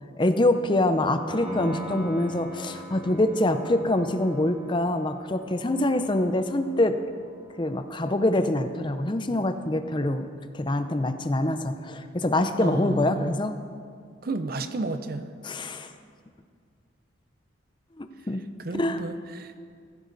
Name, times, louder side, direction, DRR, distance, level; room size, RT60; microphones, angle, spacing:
voice 1, 0.2-7.0 7.6-10.3 10.5-13.6 15.4-15.9 18.0-18.4 18.7-19.0, left 1 dB, 25° left, 9 dB, 0.6 m, -25 dB
Piano, 1.3-8.0, equal, 25° right, 2.3 m, -42 dB
voice 2, 12.6-13.4 14.2-15.3 18.6-19.5, right 2 dB, 50° right, 10 dB, 0.6 m, -32 dB
15.0 x 12.5 x 4.0 m, 2.1 s
head